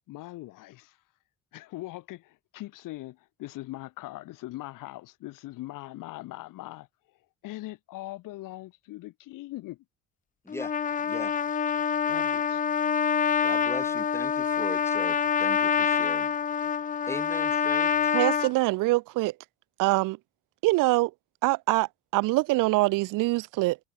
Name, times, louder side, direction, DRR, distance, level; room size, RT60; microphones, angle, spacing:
voice 1, 0.1-1.0 1.5-6.9 7.4-9.8 12.1-12.6, left 17 dB, 80° left, 3.9 m, -41 dB
Trumpet, 10.5-18.5, left 7 dB, 25° left, 0.4 m, -26 dB
voice 2, 11.0-11.3 13.4-16.3 17.1-18.2, left 1 dB, 10° left, 5.4 m, -40 dB
voice 3, 18.1-19.3 19.8-20.2 20.6-21.1 21.4-23.8, right 21 dB, 80° right, 0.6 m, -24 dB
supercardioid pair, 65°, 32 cm